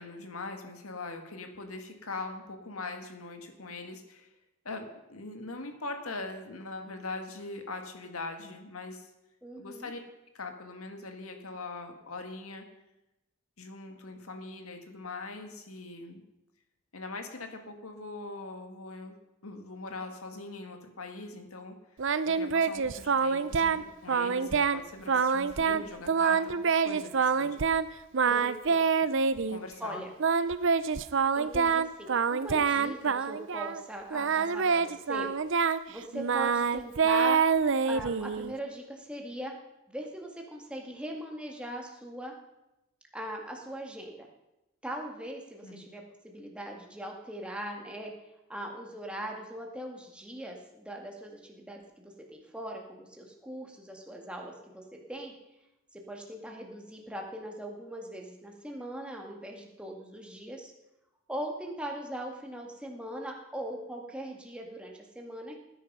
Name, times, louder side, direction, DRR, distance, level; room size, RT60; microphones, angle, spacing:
voice 1, 0.0-4.3 4.6-9.1 9.6-10.0 10.3-12.7 13.6-16.2 16.9-19.2 19.4-21.8 22.3-27.6 28.3-28.4 29.5-30.1 45.6-45.9, left 3 dB, 85° left, 5 dB, 2.1 m, -41 dB
voice 2, 9.4-9.9 28.3-28.9 29.8-30.1 31.3-35.3 35.9-37.4 37.8-39.6 39.9-42.3 43.1-44.3 44.8-48.1 48.5-55.3 55.9-60.7 61.3-65.6, right 1 dB, 5° right, 0 dB, 2.0 m, -40 dB
Singing, 22.0-23.8 24.1-24.8 25.1-25.8 26.1-27.8 28.1-29.6 30.2-33.8 34.1-38.5, right 5 dB, 60° right, 0.6 m, -26 dB
18.5 x 10.0 x 5.6 m, 0.95 s
head